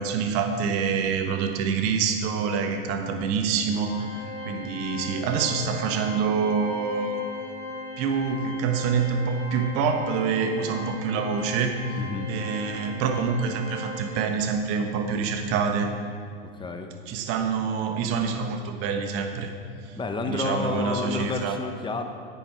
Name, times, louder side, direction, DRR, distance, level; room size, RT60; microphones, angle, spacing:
voice 1, 0.0-4.1 4.4-7.2 8.0-12.0 12.3-15.9 17.1-19.5 19.8-20.0 20.2-21.6, right 5 dB, 50° right, 5 dB, 1.4 m, -26 dB
Organ, 3.8-14.5, left 2 dB, 75° left, 2.3 m, -38 dB
voice 2, 12.0-12.3 16.5-16.9 19.9-22.1, left 3 dB, 15° left, 5 dB, 1.1 m, -30 dB
9.8 x 8.7 x 4.7 m, 2.4 s
hypercardioid pair, 95°, 30 cm